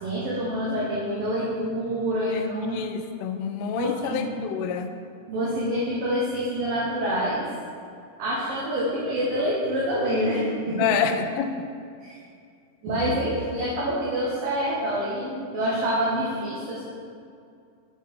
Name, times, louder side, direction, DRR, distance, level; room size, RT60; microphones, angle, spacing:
voice 1, 0.0-2.8 3.7-4.4 5.3-7.5 8.2-10.9 12.0-12.2 12.8-16.8, equal, 85° right, -6 dB, 1.9 m, -26 dB
voice 2, 2.7-4.9 10.8-11.5, left 7 dB, 85° left, 7 dB, 3.0 m, -27 dB
8.1 x 6.2 x 4.3 m, 2.3 s
omnidirectional pair, 5.7 m